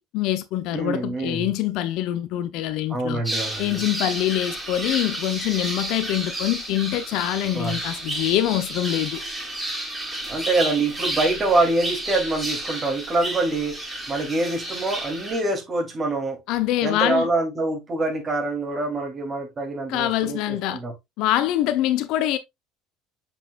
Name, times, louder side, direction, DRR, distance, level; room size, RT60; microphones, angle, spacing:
voice 1, 0.0-3.2 3.6-9.2 16.5-17.3 19.9-20.8 21.2-22.4, left 13 dB, 60° left, 0.8 m, -24 dB
voice 2, 0.7-1.5 2.9-3.8 7.5-7.8 10.1-13.8 14.1-16.4 16.8-20.9, right 2 dB, 35° right, 3.1 m, -25 dB
sound 1, 3.2-15.4, right 1 dB, 10° right, 4.1 m, -31 dB
7.0 x 5.4 x 2.5 m
hypercardioid pair, 70°, 0 cm